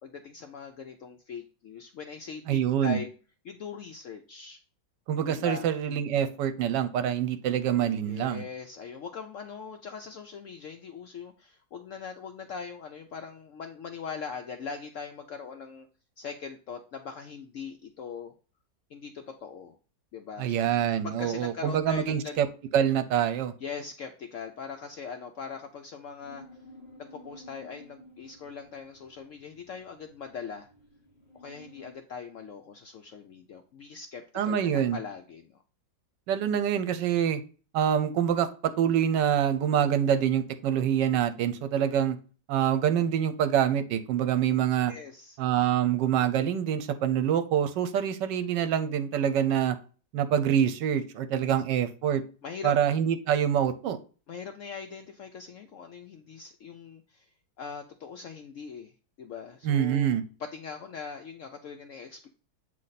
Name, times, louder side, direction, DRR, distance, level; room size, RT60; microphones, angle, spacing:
voice 1, 0.0-3.1 3.4-4.6 5.3-5.7 8.1-15.9 16.2-18.3 18.9-19.8 20.1-20.7 21.0-22.4 23.6-26.4 27.0-30.7 31.3-35.6 44.9-45.4 52.4-52.8 54.3-57.3 57.6-58.9 59.2-60.1 60.4-62.3, left 6 dB, 70° left, 5 dB, 0.7 m, -41 dB
voice 2, 2.5-3.0 5.1-8.5 20.4-22.5 22.7-23.5 34.3-35.0 36.3-37.4 37.7-42.2 42.5-44.9 45.4-49.8 50.1-52.2 52.6-54.0 59.6-60.2, right 9 dB, 80° right, 10 dB, 1.3 m, -26 dB
sound 1, 26.2-31.9, left 1 dB, 30° left, 1.5 m, -53 dB
7.6 x 3.2 x 4.0 m, 0.37 s
omnidirectional pair, 1.9 m